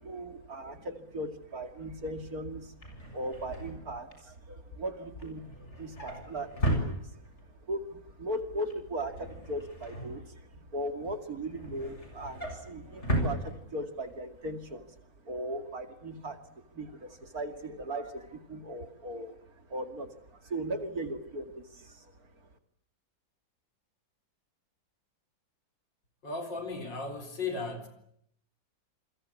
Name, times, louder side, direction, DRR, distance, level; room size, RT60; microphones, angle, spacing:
voice 1, 0.0-2.7 3.1-7.2 7.7-14.9 15.2-22.1, right 1 dB, 50° right, 2.8 m, -38 dB
Drawer open or close, 2.5-7.6 7.9-8.3 8.5-10.8 11.2-14.2 14.5-14.7 15.0-15.1, equal, 35° left, 7.4 m, -36 dB
voice 2, 26.2-27.9, left 4 dB, 65° left, 4.7 m, -36 dB
28.5 x 23.0 x 8.5 m
omnidirectional pair, 2.1 m